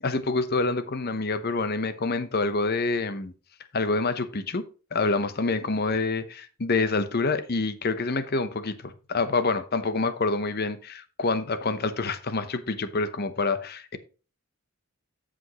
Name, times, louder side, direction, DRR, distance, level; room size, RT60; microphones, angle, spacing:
voice 1, 0.0-3.3 3.7-4.6 4.9-14.0, left 3 dB, 45° left, 0.8 m, -27 dB
14.0 x 5.1 x 3.0 m
head